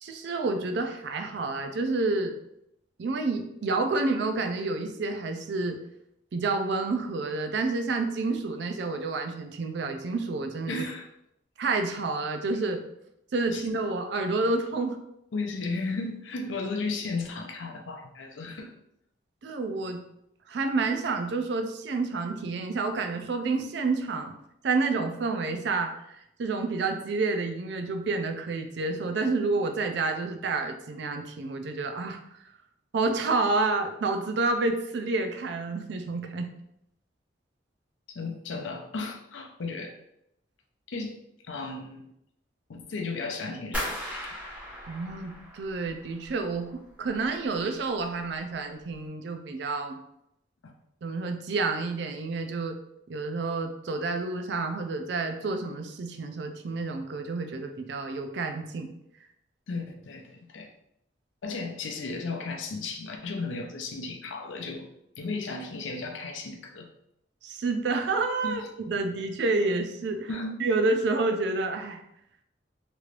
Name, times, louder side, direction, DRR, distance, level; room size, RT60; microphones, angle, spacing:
voice 1, 0.0-2.4 3.0-5.8 6.3-10.8 11.6-12.8 13.3-15.0 19.4-20.0 20.5-24.3 24.6-32.2 32.9-36.5 44.9-50.0 51.0-52.8 53.1-58.9 67.4-70.3 70.6-72.0, right 3 dB, 65° right, 5 dB, 0.4 m, -29 dB
voice 2, 10.7-11.1 13.5-13.6 15.3-18.7 38.1-39.9 40.9-41.2 41.5-42.1 42.7-44.4 50.6-50.7 59.7-60.7 61.4-64.9 65.2-66.9 68.4-68.6 70.3-70.6, left 3 dB, 90° left, 3 dB, 0.5 m, -34 dB
sound 1, 43.7-46.6 46.9-47.6 47.9-48.4 48.8-48.9, equal, 5° right, 1.0 m, -37 dB
3.1 x 3.0 x 2.5 m, 0.79 s
head